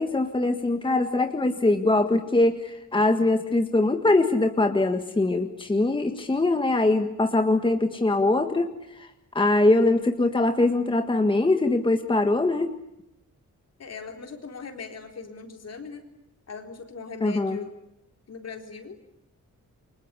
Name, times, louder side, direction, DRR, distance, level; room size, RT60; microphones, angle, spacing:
voice 1, 0.0-9.1 9.3-12.7 17.2-17.6, left 2 dB, 15° left, 6 dB, 1.6 m, -22 dB
voice 2, 13.8-16.1 16.5-17.8 18.3-19.0, left 4 dB, 55° left, 5 dB, 4.1 m, -39 dB
29.0 x 24.5 x 8.4 m, 0.82 s
wide cardioid pair, 145°, 30 cm